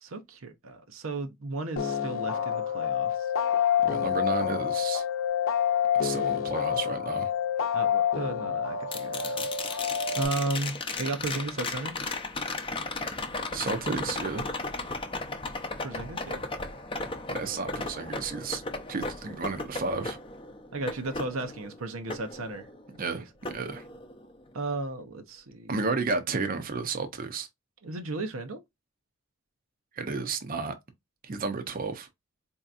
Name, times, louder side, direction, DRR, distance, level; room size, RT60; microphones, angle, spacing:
voice 1, 0.0-3.3 7.7-9.5 10.2-11.9 15.8-16.5 20.7-22.7 23.0-23.3 24.5-25.8 27.8-28.6, right 2 dB, 80° right, 0.7 m, -34 dB
sound 1, 1.8-10.3, left 8 dB, 70° left, 0.7 m, -28 dB
voice 2, 3.8-5.0 5.9-7.3 13.5-14.4 17.3-18.6 18.9-20.2 23.0-23.3 23.5-23.8 25.7-27.5 29.9-30.8 31.2-32.1, right 4 dB, 45° right, 0.6 m, -32 dB
sound 2, 8.9-23.0 23.4-24.5 26.7-26.8, left 3 dB, 25° left, 0.6 m, -36 dB
4.4 x 2.7 x 2.4 m
head